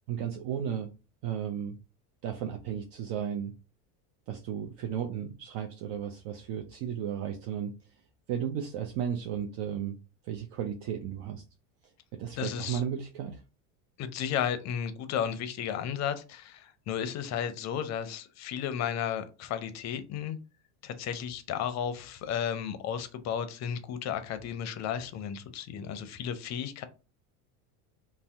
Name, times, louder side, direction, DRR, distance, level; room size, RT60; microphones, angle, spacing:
voice 1, 0.1-0.9 1.2-1.8 2.2-3.5 4.3-7.7 8.3-10.0 10.2-11.4 12.2-13.4, right 9 dB, 60° right, 3 dB, 0.5 m, -34 dB
voice 2, 12.4-12.8 14.0-20.4 20.8-26.9, left 8 dB, 40° left, 12 dB, 0.5 m, -33 dB
2.6 x 2.1 x 3.4 m, 0.32 s
supercardioid pair, 105°, 43 cm